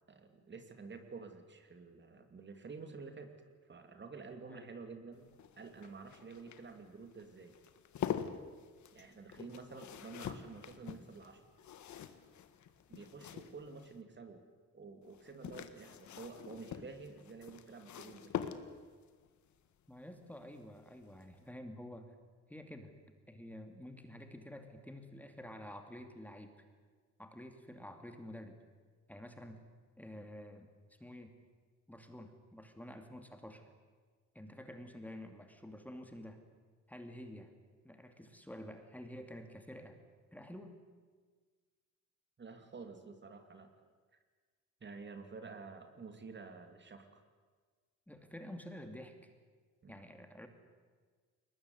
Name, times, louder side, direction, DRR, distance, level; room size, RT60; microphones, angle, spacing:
voice 1, 0.1-3.3 3.6-5.3 5.6-7.5 8.9-11.4 12.9-14.4 14.7-18.3 42.4-43.7 44.8-47.2 49.8-50.0, right 4 dB, 35° right, 7 dB, 2.8 m, -50 dB
sound 1, 5.1-14.0 15.1-19.0 20.6-20.9 21.2-21.3, left 9 dB, 70° left, 1.7 m, -45 dB
voice 2, 19.9-22.1 22.5-23.0 23.3-26.5 27.2-28.6 29.1-29.6 30.0-30.7 31.0-31.3 31.9-33.6 34.3-36.4 36.9-37.5 37.8-40.0 40.3-40.7 48.1-49.2 49.9-50.5, left 1 dB, 5° left, 6 dB, 2.6 m, -49 dB
22.0 x 20.0 x 9.8 m, 1.5 s
cardioid pair, 90°, 30 cm